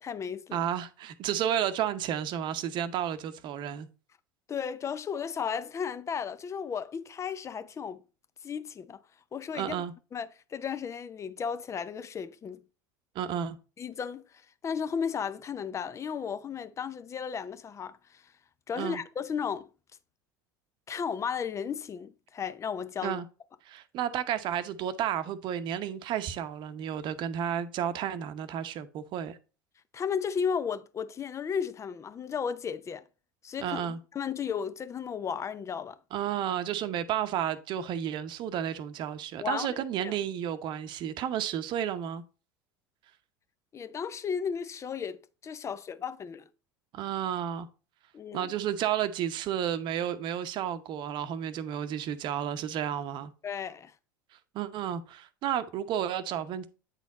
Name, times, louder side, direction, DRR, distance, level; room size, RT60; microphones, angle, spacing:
voice 1, 0.0-0.6 4.5-8.0 8.4-9.0 9.3-9.8 10.1-12.6 13.8-18.2 18.7-19.7 20.9-23.2 29.9-33.0 33.4-33.8 34.1-36.0 39.4-39.7 40.0-40.1 43.7-46.5 48.1-48.5 53.4-53.9, left 7 dB, 30° left, 0.7 m, -34 dB
voice 2, 0.5-3.9 9.5-9.9 13.1-13.6 18.8-19.0 23.0-23.2 23.6-29.4 33.6-34.0 36.1-42.2 46.9-47.7 48.3-53.3 54.3-56.7, right 10 dB, 50° right, 0.8 m, -32 dB
9.0 x 4.2 x 4.0 m
hypercardioid pair, 75°, 10 cm